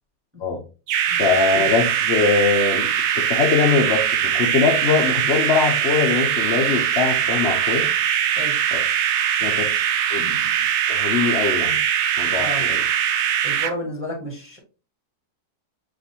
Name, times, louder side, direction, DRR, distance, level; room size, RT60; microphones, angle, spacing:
sound 1, 0.9-13.7, right 9 dB, 75° right, 1.1 m, -21 dB
voice 1, 1.2-2.9 3.2-7.9 8.7-8.8 9.4-10.5 10.9-11.8 12.2-12.8, left 5 dB, 60° left, 0.7 m, -22 dB
voice 2, 13.4-14.6, equal, 10° right, 0.9 m, -32 dB
6.6 x 2.5 x 2.7 m
omnidirectional pair, 1.7 m